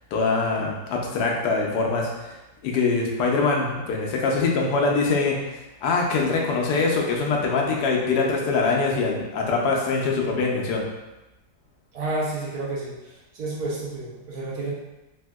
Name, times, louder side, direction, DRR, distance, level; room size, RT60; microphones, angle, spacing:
voice 1, 0.1-2.4 2.6-10.8, left 4 dB, 80° left, -1 dB, 1.1 m, -23 dB
voice 2, 11.9-14.7, right 2 dB, 70° right, -5 dB, 1.2 m, -30 dB
3.5 x 2.6 x 2.2 m, 1.0 s
omnidirectional pair, 1.8 m